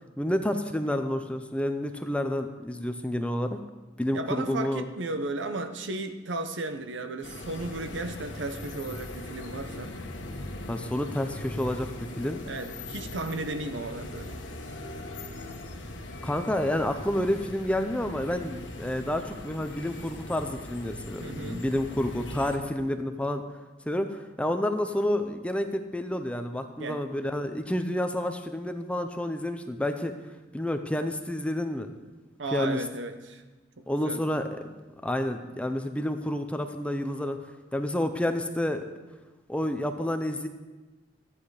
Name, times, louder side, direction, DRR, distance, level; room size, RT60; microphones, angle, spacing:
voice 1, 0.2-3.6 4.0-4.9 10.7-11.9 12.2-12.4 16.2-23.4 23.9-30.1 30.5-32.1 32.5-32.8 33.9-34.7 35.0-37.4 37.7-38.8 39.5-40.5, left 1 dB, 5° left, 7 dB, 0.6 m, -29 dB
voice 2, 4.1-9.9 12.4-14.4 21.2-21.7 26.8-27.0 32.4-33.4 33.8-34.4, right 2 dB, 80° right, 8 dB, 0.9 m, -35 dB
sound 1, 7.2-22.6, left 1 dB, 85° left, 1.3 m, -40 dB
13.0 x 8.7 x 4.9 m, 1.2 s
head